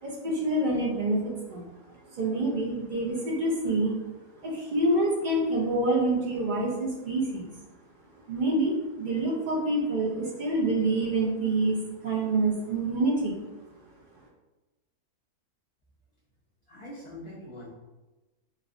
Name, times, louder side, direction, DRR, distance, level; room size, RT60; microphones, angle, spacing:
voice 1, 0.0-1.6 2.1-3.9 4.4-7.5 8.3-13.3, right 2 dB, 55° right, -4 dB, 0.5 m, -27 dB
voice 2, 16.7-17.7, left 1 dB, 50° left, -10 dB, 1.0 m, -43 dB
4.3 x 2.3 x 2.5 m, 1.1 s
omnidirectional pair, 1.6 m